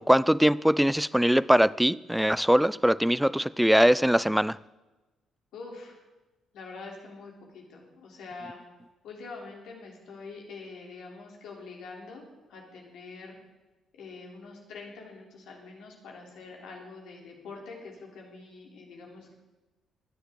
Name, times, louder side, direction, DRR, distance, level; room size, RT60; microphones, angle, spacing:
voice 1, 0.0-4.6, equal, 5° right, 0.4 m, -22 dB
voice 2, 5.5-6.0 6.5-8.6 9.0-12.2 12.5-13.4 13.9-19.4, left 4 dB, 60° left, 3.1 m, -45 dB
22.0 x 10.0 x 3.7 m
figure-of-eight pair, 45°, 0 cm